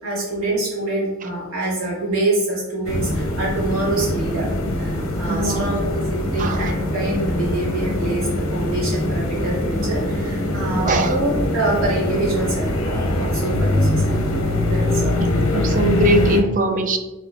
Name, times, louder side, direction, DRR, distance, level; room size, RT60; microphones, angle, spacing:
voice 1, 0.0-4.5 4.8-14.2 14.6-15.2 15.5-15.9, right 2 dB, 75° right, -5 dB, 1.5 m, -25 dB
sound 1, 2.8-16.4, left 1 dB, 65° left, 0.7 m, -22 dB
voice 2, 5.3-5.8 6.4-6.6 10.8-11.1 15.2-17.0, right 1 dB, 40° right, 6 dB, 0.4 m, -21 dB
5.2 x 3.1 x 2.4 m, 1.0 s
head